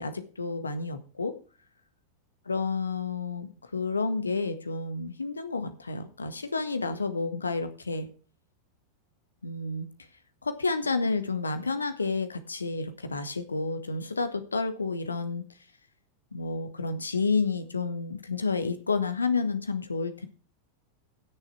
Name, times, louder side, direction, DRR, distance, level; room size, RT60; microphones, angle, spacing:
voice 1, 0.0-1.3 2.5-8.1 9.4-9.9 10.4-15.4 16.3-20.3, left 4 dB, 75° left, 10 dB, 1.6 m, -30 dB
16.0 x 7.0 x 4.6 m, 0.37 s
figure-of-eight pair, 90°, 0 cm